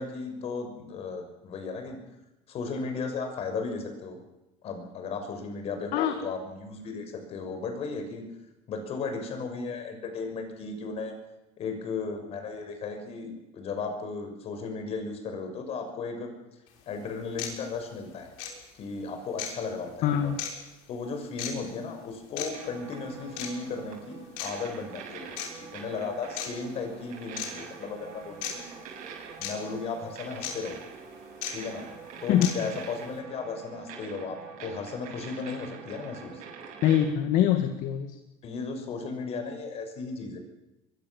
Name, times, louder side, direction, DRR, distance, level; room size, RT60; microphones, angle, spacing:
voice 1, 0.0-2.0 2.5-4.2 4.6-8.2 8.7-11.2 11.6-16.3 16.9-18.3 18.7-20.3 20.9-28.7 29.4-30.8 31.5-31.9 32.2-36.4 38.4-40.4, left 4 dB, 40° left, 5 dB, 6.3 m, -35 dB
sound 1, 16.7-16.8 17.4-17.5 18.4-18.5 19.4-19.5 20.4-20.5 21.4-21.5 22.4-22.5 23.4-23.5 24.4-24.5 25.4-25.5 26.4-26.5 27.4-27.5 28.4-28.5 29.4-29.5 30.4-30.5 31.4-31.5 32.4-32.5, left 10 dB, 85° left, 6.5 m, -34 dB
voice 2, 20.0-20.4 32.3-32.5 36.8-38.1, left 10 dB, 60° left, 7 dB, 2.1 m, -23 dB
sound 2, 22.5-37.1, right 6 dB, 60° right, 7.8 m, -45 dB
23.0 x 23.0 x 7.3 m, 0.94 s
cardioid pair, 160°, 15 cm